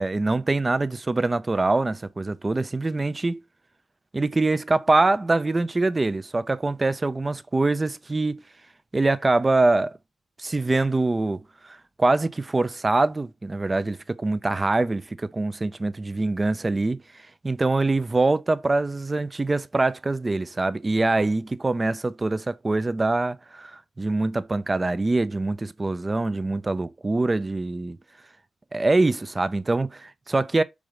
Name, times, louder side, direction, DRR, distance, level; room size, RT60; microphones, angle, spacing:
voice 1, 0.0-3.4 4.1-8.4 8.9-10.0 10.4-17.0 17.4-28.0 28.7-30.6, right 2 dB, 30° right, 0.6 m, -24 dB
4.9 x 3.8 x 5.0 m
supercardioid pair, 50°, 0 cm